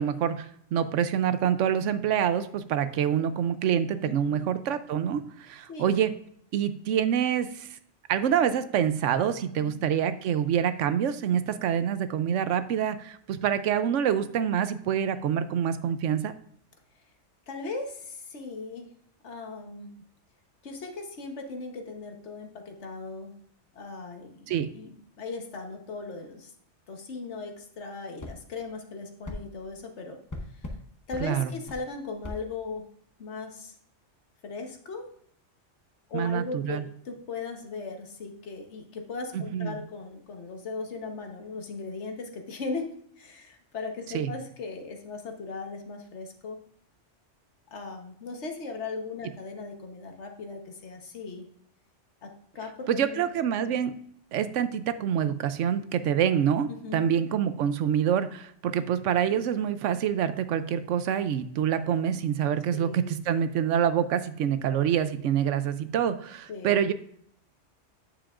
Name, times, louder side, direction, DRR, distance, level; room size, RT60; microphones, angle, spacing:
voice 1, 0.0-6.1 6.5-7.8 8.1-16.3 24.5-24.7 31.2-31.5 36.1-36.9 39.3-39.8 44.1-44.3 52.9-53.9 54.3-66.9, right 9 dB, 90° right, 12 dB, 1.0 m, -26 dB
voice 2, 4.0-4.5 5.7-6.0 9.6-9.8 17.5-18.9 19.2-19.9 20.6-23.3 23.7-26.5 26.9-30.2 30.6-30.7 31.1-32.8 33.2-33.7 34.4-35.1 36.1-42.9 43.2-46.6 47.7-51.5 52.2-53.3 53.6-53.8 56.7-57.1 62.7-63.2 66.5-66.7, left 4 dB, 70° left, 4 dB, 1.4 m, -38 dB
sound 1, 28.2-28.4 29.2-29.4 30.3-30.8 31.1-31.3 31.7-31.8 32.2-32.4, left 1 dB, 20° left, 0.7 m, -37 dB
8.7 x 7.0 x 2.4 m, 0.67 s
omnidirectional pair, 1.2 m